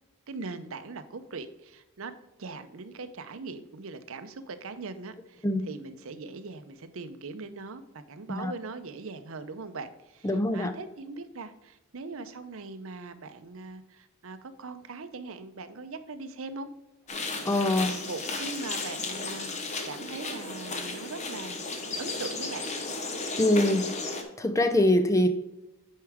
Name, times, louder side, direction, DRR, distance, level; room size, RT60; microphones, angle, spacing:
voice 1, 0.3-2.1 2.4-16.7 18.1-21.6 22.0-22.7, right 3 dB, 65° right, 10 dB, 0.7 m, -40 dB
voice 2, 10.2-10.7 17.5-18.0 23.4-23.9 24.4-25.3, left 1 dB, 15° left, 8 dB, 0.5 m, -23 dB
sound 1, 17.1-24.2, left 3 dB, 30° left, 0.9 m, -34 dB
9.4 x 4.7 x 3.5 m, 0.96 s
head